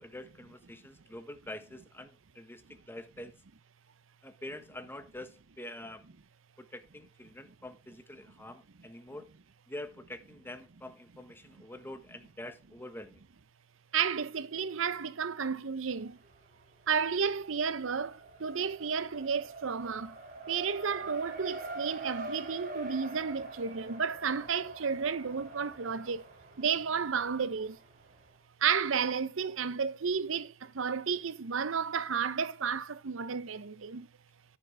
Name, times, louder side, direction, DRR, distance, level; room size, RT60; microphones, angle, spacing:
voice 1, 0.0-3.3 4.2-6.0 6.6-9.3 9.7-13.2, left 1 dB, 10° left, 1.3 m, -46 dB
voice 2, 13.9-16.1 16.9-18.1 18.4-20.1 20.5-26.2 26.6-27.7 28.6-30.5 30.8-34.1, right 6 dB, 70° right, 0.7 m, -32 dB
Race car auto racing, 15.9-16.6 16.9-28.3, right 2 dB, 40° right, 3.2 m, -45 dB
9.8 x 9.4 x 3.4 m
head